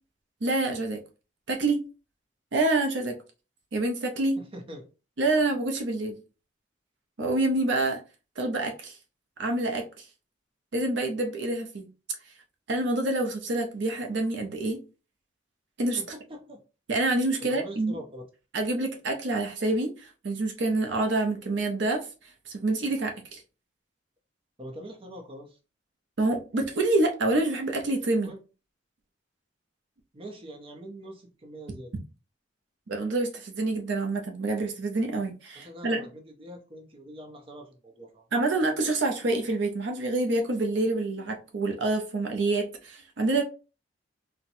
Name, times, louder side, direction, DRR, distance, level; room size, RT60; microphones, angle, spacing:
voice 1, 0.4-1.0 1.5-1.8 2.5-3.2 3.7-4.4 5.2-6.2 7.2-8.0 8.4-9.0 9.4-10.1 10.7-11.9 12.7-14.8 15.8-16.0 16.9-17.9 18.5-22.1 22.5-23.4 26.2-28.3 32.9-36.1 38.3-43.4, right 2 dB, 70° right, 3 dB, 0.6 m, -27 dB
voice 2, 4.4-4.9 16.0-16.6 17.4-18.2 24.6-25.6 28.2-28.4 30.1-31.9 35.5-38.2, equal, 30° right, 2 dB, 0.7 m, -43 dB
4.1 x 2.2 x 2.6 m, 0.33 s
head